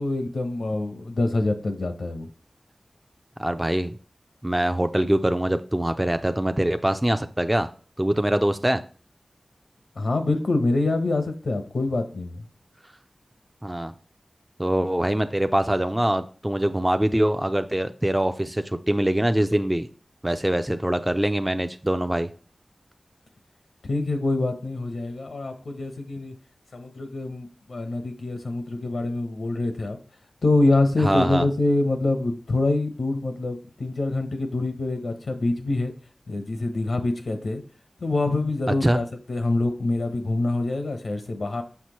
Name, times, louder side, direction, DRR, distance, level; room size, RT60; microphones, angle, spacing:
voice 1, 0.0-2.3 10.0-12.5 23.8-26.3 26.7-30.0 30.4-35.9 36.3-37.6 38.0-41.6, left 2 dB, 90° left, 7 dB, 0.9 m, -25 dB
voice 2, 3.4-3.9 4.4-7.7 8.0-8.8 13.6-13.9 14.6-19.9 20.2-22.3 31.0-31.5 38.8-39.0, right 1 dB, 15° right, 8 dB, 0.5 m, -23 dB
6.3 x 5.9 x 3.1 m, 0.40 s
wide cardioid pair, 55°, 0 cm